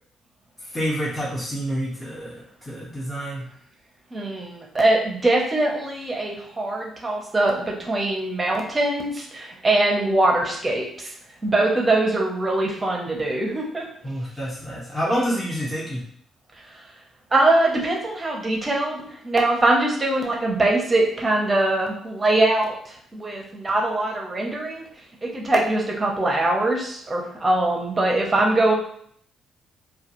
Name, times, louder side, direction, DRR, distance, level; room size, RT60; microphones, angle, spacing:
voice 1, 0.6-3.4 14.0-16.0, equal, 15° left, -7 dB, 0.8 m, -28 dB
voice 2, 4.1-11.1 11.4-13.9 17.3-22.7 23.1-24.8 25.2-28.7, right 2 dB, 25° right, 0 dB, 0.7 m, -22 dB
2.3 x 2.3 x 2.9 m, 0.65 s
cardioid pair, 90°, 0 cm